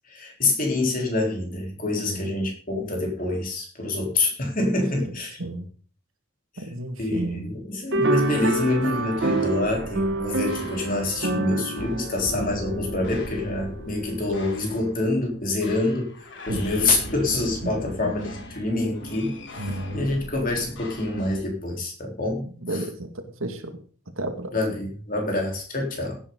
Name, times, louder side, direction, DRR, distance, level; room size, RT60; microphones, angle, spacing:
voice 1, 0.1-5.4 6.6-6.7 7.0-16.1 16.5-22.4 22.7-22.8 24.5-26.2, left 2 dB, 40° left, 1 dB, 3.9 m, -26 dB
voice 2, 5.0-5.7 6.6-7.5 11.5-11.7 16.5-16.6 17.6-18.1 19.6-20.1 22.4-23.7 24.2-24.6, right 1 dB, 75° right, 6 dB, 2.3 m, -33 dB
sound 1, 7.9-13.5, right 2 dB, 55° right, 1.3 m, -28 dB
sound 2, 8.2-21.5, left 1 dB, 60° left, 2.9 m, -39 dB
16.0 x 9.5 x 3.9 m, 0.42 s
head